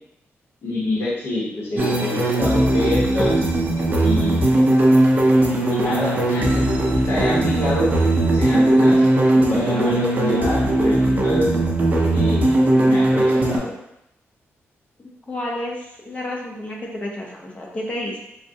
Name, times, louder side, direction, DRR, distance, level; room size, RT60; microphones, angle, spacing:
voice 1, 0.6-3.4 4.0-4.7 5.7-6.7 7.0-7.9 8.2-9.1 9.3-11.5 12.1-13.7, left 1 dB, 55° left, -6 dB, 0.8 m, -26 dB
sound 1, 1.8-13.6, right 1 dB, 35° right, 0.4 m, -18 dB
voice 2, 15.3-18.2, left 1 dB, 25° left, -2 dB, 0.5 m, -30 dB
3.5 x 2.1 x 2.6 m, 0.86 s
wide cardioid pair, 160°, 5 cm